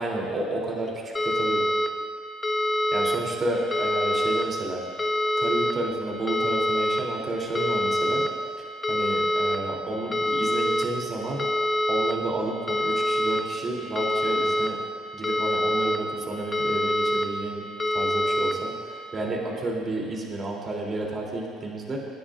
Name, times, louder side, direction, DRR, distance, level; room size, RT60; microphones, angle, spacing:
voice 1, 0.0-1.6 2.9-4.8 5.4-8.3 8.6-11.4 11.9-14.8 15.1-17.6 17.9-22.0, right 2 dB, 35° right, -2 dB, 2.9 m, -31 dB
sound 1, 1.1-1.9 2.4-3.2 3.7-4.4 5.0-5.7 6.3-7.0 7.5-8.3 8.8-9.6 10.1-10.8 11.4-12.1 12.7-13.4 13.9-14.7 15.2-16.0 16.5-17.2 17.8-18.5, left 1 dB, 20° left, 1.0 m, -24 dB
25.0 x 10.0 x 2.5 m, 2.2 s
supercardioid pair, 80°, 0 cm